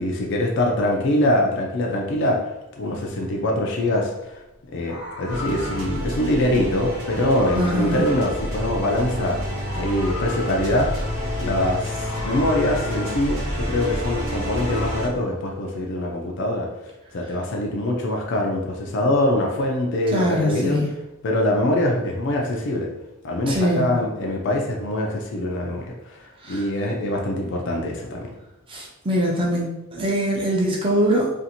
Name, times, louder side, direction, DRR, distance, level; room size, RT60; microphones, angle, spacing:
voice 1, 0.0-2.4 2.8-4.4 4.7-9.4 9.7-10.9 11.4-16.7 17.1-20.8 21.2-22.9 23.2-28.3, left 1 dB, 55° left, 0 dB, 0.4 m, -23 dB
Meow, 3.9-4.2 4.7-6.2 6.9-9.2 9.5-11.4 11.9-13.5 14.0-15.0, left 3 dB, 90° left, 1.0 m, -38 dB
sound 1, 5.3-15.1, equal, 65° right, 0.8 m, -29 dB
voice 2, 7.5-8.1 20.1-20.9 23.5-23.9 26.4-26.6 28.7-31.3, equal, 25° right, -3 dB, 0.5 m, -22 dB
2.6 x 2.5 x 2.8 m, 0.97 s
head